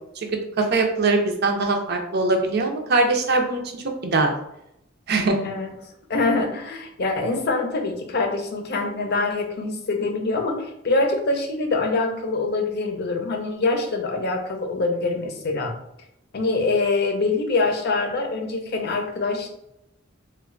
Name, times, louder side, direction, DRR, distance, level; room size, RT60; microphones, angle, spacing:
voice 1, 0.6-4.3 5.1-5.4, right 3 dB, 55° right, 3 dB, 0.6 m, -22 dB
voice 2, 6.1-15.8 16.3-19.5, left 3 dB, 55° left, 4 dB, 0.6 m, -24 dB
3.1 x 2.2 x 3.7 m, 0.80 s
head